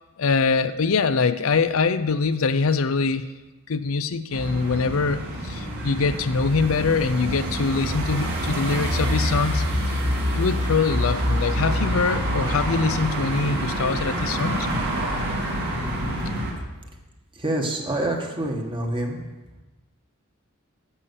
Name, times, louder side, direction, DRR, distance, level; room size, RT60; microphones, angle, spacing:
voice 1, 0.2-3.2 3.7-10.0 10.3-14.7 16.3-16.4, left 4 dB, 70° left, 11 dB, 0.6 m, -23 dB
sound 1, 4.3-16.5, equal, 50° right, 2.5 m, -26 dB
voice 2, 17.3-19.2, right 1 dB, 25° right, 2 dB, 1.7 m, -27 dB
11.5 x 8.3 x 7.0 m, 1.1 s
head